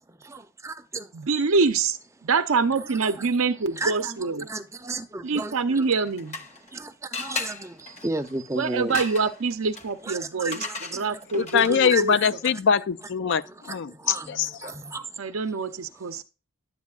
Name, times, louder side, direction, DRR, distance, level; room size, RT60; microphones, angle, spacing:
voice 1, 0.1-1.1 2.9-3.3 3.8-5.9 6.6-9.0 10.0-12.3 13.3-15.3 16.1-16.2, right 2 dB, 15° right, 0.5 m, -35 dB
voice 2, 1.1-4.5 5.2-6.4 8.5-12.2 15.2-16.2, right 4 dB, 75° right, 0.6 m, -25 dB
sound 1, 5.8-6.7 7.1-12.0, left 4 dB, 30° left, 0.8 m, -37 dB
voice 3, 11.3-14.7, left 7 dB, 55° left, 0.4 m, -23 dB
10.5 x 8.2 x 2.4 m
head